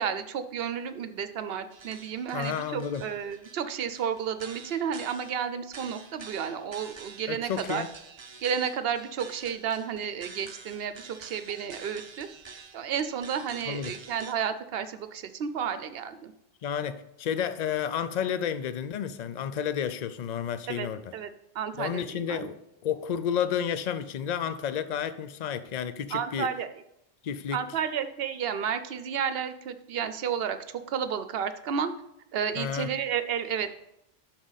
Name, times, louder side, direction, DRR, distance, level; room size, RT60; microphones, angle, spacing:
voice 1, 0.0-7.8 8.4-12.3 12.7-16.3 20.7-20.9 21.1-21.3 21.5-22.5 26.1-26.7 27.5-31.9 32.3-33.7, right 7 dB, 65° right, 0.9 m, -32 dB
sound 1, 1.7-14.3, right 4 dB, 35° right, 0.5 m, -48 dB
voice 2, 2.3-3.0 7.3-7.9 13.7-13.9 16.6-21.1 21.8-26.5 27.2-27.6 32.5-32.9, left 8 dB, 50° left, 0.6 m, -31 dB
9.9 x 6.4 x 4.0 m
omnidirectional pair, 1.1 m